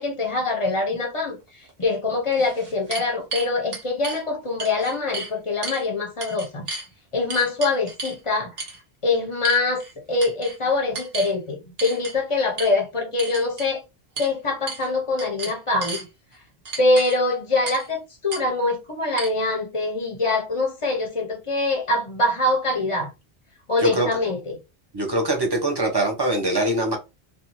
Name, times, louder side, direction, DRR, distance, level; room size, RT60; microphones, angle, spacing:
voice 1, 0.0-1.4 1.8-6.7 7.1-8.5 9.0-9.8 10.1-13.8 14.2-16.0 16.8-23.1 23.7-24.6, left 2 dB, 35° left, 0.7 m, -24 dB
sound 1, 1.7-1.8 2.3-4.2 4.6-5.3 5.6-5.8 6.2-6.9 7.3-8.2 8.6-8.8 9.4-9.9 10.2-10.6 10.9-11.3 11.8-12.1 12.6-12.7 13.2-13.7 14.2-14.3 14.7-14.9 15.2-16.0 16.7-17.2 17.7-17.9 18.3-18.4 19.2-19.3, right 3 dB, 65° right, 1.1 m, -33 dB
voice 2, 23.8-24.1 24.9-27.0, right 1 dB, 25° right, 0.7 m, -23 dB
2.6 x 2.3 x 2.9 m
omnidirectional pair, 1.1 m